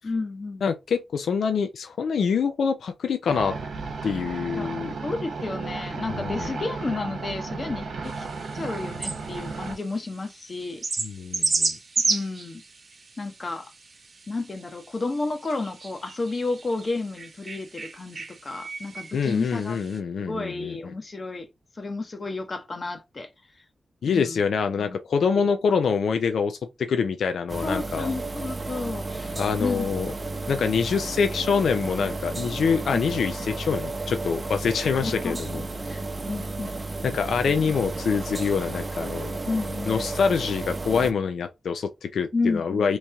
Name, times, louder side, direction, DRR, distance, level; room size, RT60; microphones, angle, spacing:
voice 1, 0.0-0.7 4.5-4.7 5.0-8.2 8.5-10.8 12.0-12.6 13.2-13.7 14.3-21.5 21.8-23.3 24.1-24.4 24.8-25.0 25.3-25.4 27.6-29.9 30.2-30.3 32.9-33.0 35.0-35.4 35.9-36.0 36.3-36.7 39.5-40.0 42.3-42.9, left 3 dB, 45° left, 0.9 m, -31 dB
voice 2, 0.6-3.6 4.0-4.9 6.1-6.6 11.0-11.8 19.1-20.9 24.0-28.1 29.4-30.1 30.5-35.9 37.0-39.4 39.9-43.0, left 6 dB, 80° left, 0.4 m, -25 dB
sound 1, 3.3-9.8, right 4 dB, 80° right, 0.9 m, -34 dB
sound 2, 8.0-20.0, right 3 dB, 55° right, 1.1 m, -33 dB
sound 3, 27.5-41.1, right 3 dB, 35° right, 0.7 m, -33 dB
3.0 x 2.8 x 3.4 m
cardioid pair, 55°, 0 cm